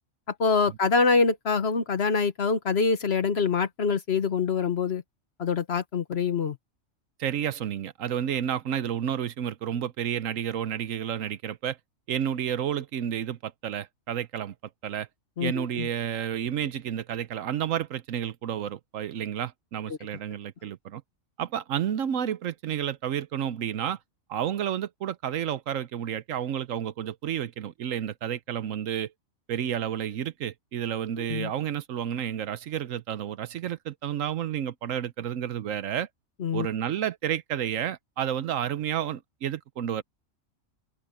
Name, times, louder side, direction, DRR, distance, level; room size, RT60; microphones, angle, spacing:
voice 1, 0.3-5.0 5.4-6.6 15.4-15.9 19.9-20.0 31.2-31.5 36.4-36.7, left 5 dB, 50° left, 1.3 m, -25 dB
voice 2, 7.2-11.8 12.1-14.5 14.8-15.1 15.4-21.0 21.4-24.0 24.3-29.1 29.5-36.1 36.5-40.0, right 9 dB, 70° right, 1.1 m, -31 dB
open air
omnidirectional pair, 1.4 m